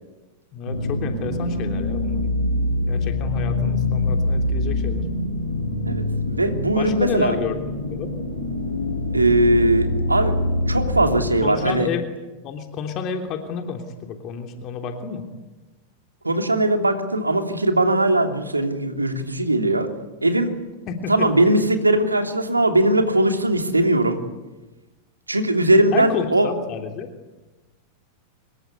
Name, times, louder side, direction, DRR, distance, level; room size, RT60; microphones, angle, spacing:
voice 1, 0.5-2.2 2.9-5.1 6.7-7.6 7.9-8.1 11.4-12.1 12.4-15.2 20.9-21.3 25.9-27.1, left 7 dB, 35° left, 5 dB, 3.2 m, -30 dB
sound 1, 0.7-11.3, left 2 dB, 85° left, 7.0 m, -24 dB
voice 2, 5.8-7.4 9.1-10.4 10.7-11.9 16.2-19.9 20.2-20.5 21.1-24.2 25.3-26.5, right 1 dB, 80° right, 5 dB, 3.0 m, -20 dB
26.5 x 22.0 x 9.6 m, 1.1 s
figure-of-eight pair, 90°, 0 cm